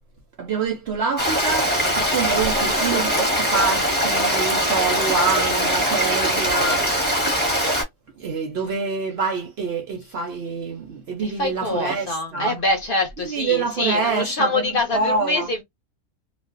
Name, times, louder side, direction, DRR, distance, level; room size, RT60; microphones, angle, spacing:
voice 1, 0.4-7.1 8.2-12.6 13.2-15.5, right 4 dB, 65° right, 0.6 m, -26 dB
Stream, 1.2-7.8, equal, 10° left, 0.8 m, -21 dB
voice 2, 11.2-15.6, left 2 dB, 50° left, 0.8 m, -25 dB
2.4 x 2.1 x 2.4 m
omnidirectional pair, 1.5 m